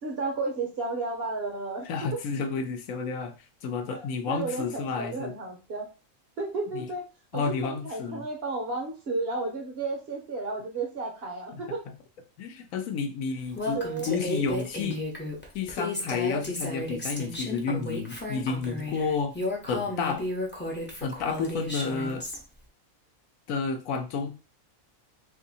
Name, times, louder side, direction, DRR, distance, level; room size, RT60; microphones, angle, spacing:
voice 1, 0.0-1.9 3.9-4.0 4.3-5.9 6.4-7.1 7.3-11.8 13.7-14.1, right 3 dB, 55° right, 2 dB, 0.8 m, -33 dB
voice 2, 1.9-3.3 3.6-5.3 6.7-6.9 7.3-8.2 11.5-11.6 12.4-13.8 14.1-15.0 15.5-19.3 19.7-20.2 21.0-22.2 23.5-24.3, left 5 dB, 75° left, 6 dB, 1.0 m, -31 dB
Female speech woman speaking, 13.5-22.4, left 1 dB, 10° left, 0.5 m, -33 dB
2.7 x 2.6 x 4.0 m, 0.32 s
omnidirectional pair, 1.5 m